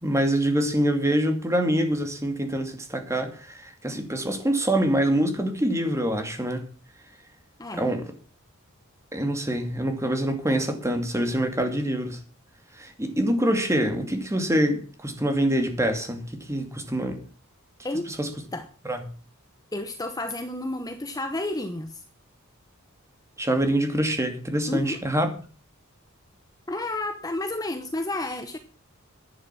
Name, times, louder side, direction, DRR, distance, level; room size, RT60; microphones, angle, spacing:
voice 1, 0.0-6.7 7.8-8.0 9.1-12.2 12.8-17.2 18.1-18.3 18.8-19.0 23.4-25.3, right 1 dB, 15° right, 2.6 m, -25 dB
voice 2, 7.6-7.9 17.8-18.1 18.5-18.7 19.7-22.0 24.7-25.0 26.7-28.6, left 2 dB, 15° left, 0.9 m, -31 dB
11.5 x 10.5 x 6.2 m
head